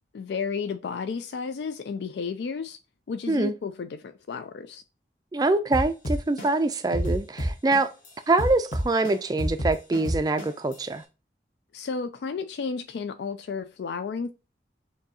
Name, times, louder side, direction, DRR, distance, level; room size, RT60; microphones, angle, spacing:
voice 1, 0.1-2.8 3.1-4.8 11.7-14.3, left 5 dB, 75° left, 0.3 m, -32 dB
voice 2, 5.3-7.9 8.3-11.0, right 2 dB, 20° right, 0.3 m, -24 dB
sound 1, 5.7-8.1 8.4-10.7, equal, 45° left, 1.4 m, -28 dB
6.4 x 2.7 x 2.6 m
head